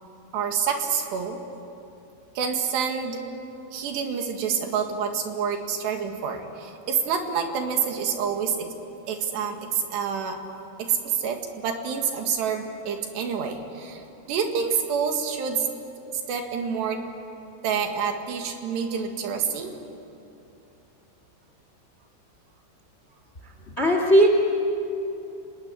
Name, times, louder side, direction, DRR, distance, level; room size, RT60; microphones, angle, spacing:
voice 1, 0.3-1.4 2.4-3.2 3.7-8.7 9.1-10.4 10.8-15.7 16.1-17.0 17.6-19.7, right 6 dB, 80° right, 4 dB, 4.0 m, -27 dB
voice 2, 23.8-24.3, right 1 dB, 30° left, 4 dB, 1.3 m, -17 dB
30.0 x 19.5 x 10.0 m, 2.8 s
omnidirectional pair, 4.9 m